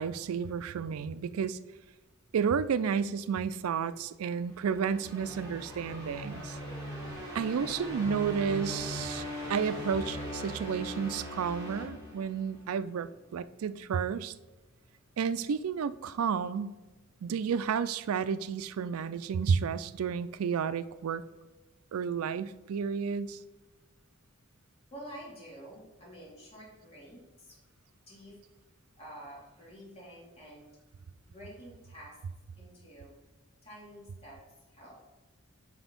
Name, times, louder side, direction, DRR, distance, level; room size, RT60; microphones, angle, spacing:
voice 1, 0.0-1.6 2.3-6.6 7.3-9.2 9.5-14.3 15.2-16.8 17.2-21.2 21.9-23.4, right 6 dB, 85° right, 15 dB, 0.4 m, -31 dB
sound 1, 4.4-12.7, equal, 15° right, 2.7 m, -40 dB
voice 2, 13.3-13.6 14.4-15.2 17.1-17.3 24.9-27.6 28.1-28.4 29.0-30.7 31.3-32.2 32.5-33.1 33.6-34.4 34.7-35.0, equal, 30° left, -6 dB, 2.5 m, -50 dB
6.1 x 5.1 x 5.2 m, 1.1 s
head